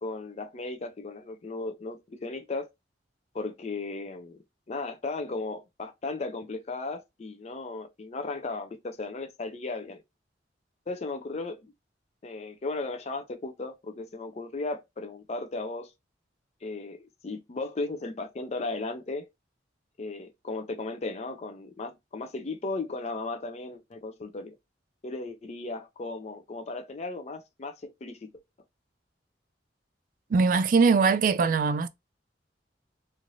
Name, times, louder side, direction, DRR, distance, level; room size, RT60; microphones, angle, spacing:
voice 1, 0.0-2.7 3.3-4.4 4.7-10.0 10.9-11.7 12.2-15.9 16.6-17.0 17.2-19.3 20.0-24.6 25.0-28.3, left 3 dB, 35° left, 0.4 m, -36 dB
voice 2, 30.3-31.9, right 4 dB, 45° right, 0.3 m, -21 dB
3.1 x 2.5 x 2.5 m
head